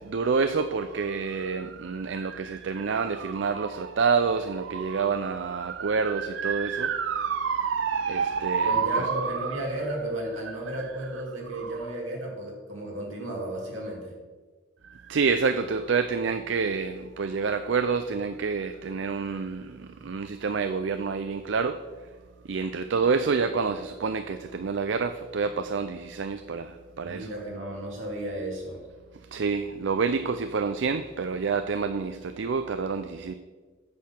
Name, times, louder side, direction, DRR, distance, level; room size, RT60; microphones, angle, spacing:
voice 1, 0.0-9.6 10.8-10.9 11.5-11.9 14.8-21.8 22.5-27.3 29.3-33.3, right 5 dB, 60° right, 10 dB, 0.4 m, -28 dB
voice 2, 8.6-14.1 27.0-28.8, right 1 dB, 80° right, -2 dB, 2.7 m, -33 dB
8.5 x 6.7 x 5.9 m, 1.4 s
head